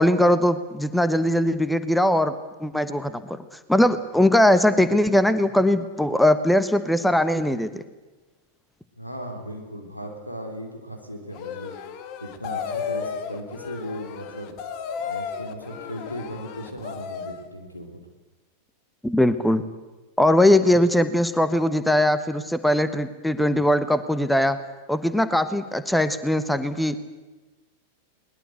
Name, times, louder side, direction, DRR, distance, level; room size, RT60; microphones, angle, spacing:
voice 1, 0.0-2.3 2.6-3.4 3.7-7.7 19.0-19.6 20.2-24.6 24.9-27.1, left 1 dB, 5° left, 13 dB, 1.1 m, -20 dB
voice 2, 9.0-11.7 12.2-14.5 15.0-17.9, equal, 90° left, 4 dB, 3.8 m, -37 dB
sound 1, 11.3-17.5, left 7 dB, 45° left, 1.8 m, -34 dB
21.5 x 20.0 x 8.1 m, 1.2 s
figure-of-eight pair, 90°, 0 cm